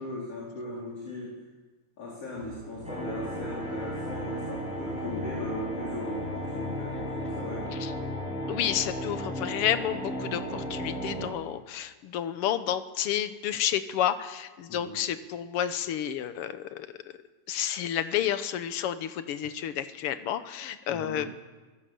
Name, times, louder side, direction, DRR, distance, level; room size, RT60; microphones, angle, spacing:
voice 1, 0.0-1.4 2.0-7.7 14.7-15.0 20.9-21.3, left 1 dB, 50° left, -4 dB, 5.1 m, -38 dB
sound 1, 2.3-8.1, right 1 dB, 60° right, 7.4 m, -44 dB
sound 2, 2.8-11.3, equal, ahead, 7.0 m, -34 dB
voice 2, 8.5-16.9 17.5-21.3, left 10 dB, 65° left, 11 dB, 1.5 m, -30 dB
24.5 x 17.5 x 7.8 m, 1.3 s
omnidirectional pair, 3.6 m